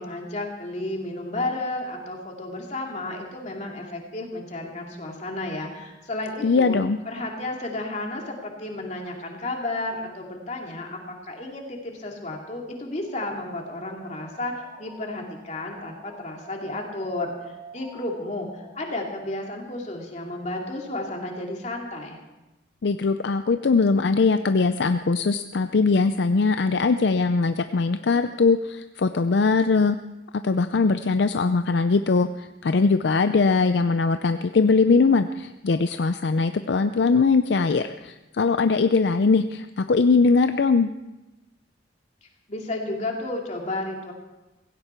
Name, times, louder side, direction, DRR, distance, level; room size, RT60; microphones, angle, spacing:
voice 1, 0.0-6.8 7.1-22.2 42.5-44.1, left 2 dB, 40° left, 0 dB, 2.7 m, -32 dB
voice 2, 6.4-7.0 22.8-30.0 30.4-40.9, left 4 dB, 65° left, 10 dB, 0.5 m, -21 dB
sound 1, 13.0-19.1, right 2 dB, 25° right, 4.9 m, -48 dB
16.5 x 16.0 x 4.5 m, 1.0 s
head